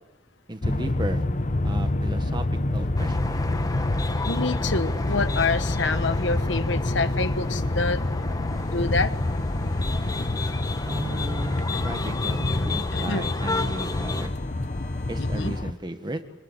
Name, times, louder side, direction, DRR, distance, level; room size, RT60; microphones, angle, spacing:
voice 1, 0.5-1.2 1.6-2.4 2.7-3.5 10.8-14.3 15.1-16.2, right 1 dB, 25° right, 8 dB, 1.6 m, -34 dB
sound 1, 0.6-15.7, left 2 dB, 40° left, 0.9 m, -27 dB
sound 2, 3.0-14.3, left 3 dB, 20° left, 1.1 m, -34 dB
voice 2, 4.3-8.0 8.7-9.1 12.9-13.3 15.2-15.5, left 3 dB, 70° left, 11 dB, 1.2 m, -27 dB
sound 3, 8.4-15.6, left 1 dB, 5° left, 8.0 m, -54 dB
26.0 x 20.5 x 8.1 m, 1.0 s
head